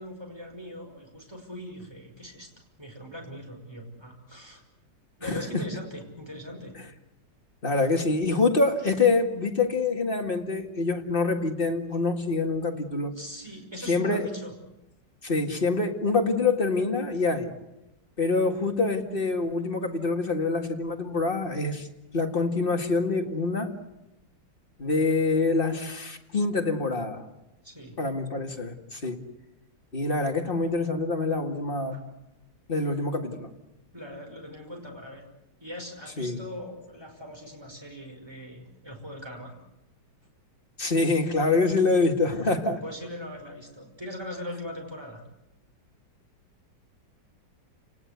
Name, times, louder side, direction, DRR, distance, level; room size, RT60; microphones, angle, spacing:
voice 1, 0.0-2.5 2.8-4.6 5.2-6.7 13.1-14.5 27.6-28.0 31.9-32.0 33.9-35.3 35.6-39.5 42.7-45.2, equal, 15° right, 5.7 m, -40 dB
voice 2, 5.2-5.6 7.6-13.1 13.9-14.3 15.2-17.5 18.2-21.9 22.1-23.8 24.8-27.3 28.0-29.2 29.9-32.0 32.7-33.5 36.2-36.4 40.8-42.8, left 3 dB, 30° left, 2.2 m, -26 dB
29.5 x 19.5 x 8.2 m
omnidirectional pair, 2.0 m